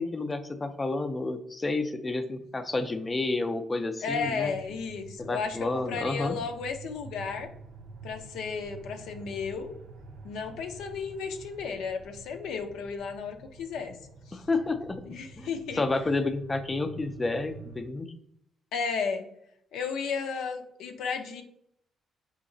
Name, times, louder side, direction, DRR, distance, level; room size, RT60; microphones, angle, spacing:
voice 1, 0.0-4.6 5.2-6.4 14.3-15.0 15.4-15.5 15.7-18.1, left 3 dB, 25° left, 8 dB, 0.3 m, -30 dB
voice 2, 4.0-7.5 8.0-9.7 10.2-14.0 14.3-14.4 15.1-15.8 18.7-19.2 19.7-21.4, left 5 dB, 85° left, 5 dB, 0.5 m, -34 dB
sound 1, 4.1-17.8, right 3 dB, 75° right, 0.5 m, -48 dB
3.9 x 2.8 x 2.6 m, 0.74 s
cardioid pair, 90°, 0 cm